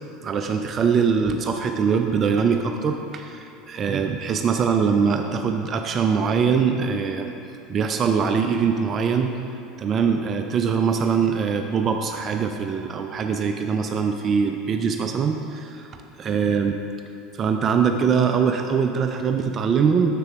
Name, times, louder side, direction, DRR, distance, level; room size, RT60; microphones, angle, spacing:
voice 1, 0.2-7.3 7.7-9.3 9.8-15.9 16.2-16.8 17.3-20.1, right 6 dB, 40° right, 5 dB, 0.4 m, -22 dB
6.7 x 6.7 x 3.5 m, 2.7 s
hypercardioid pair, 75°, 0 cm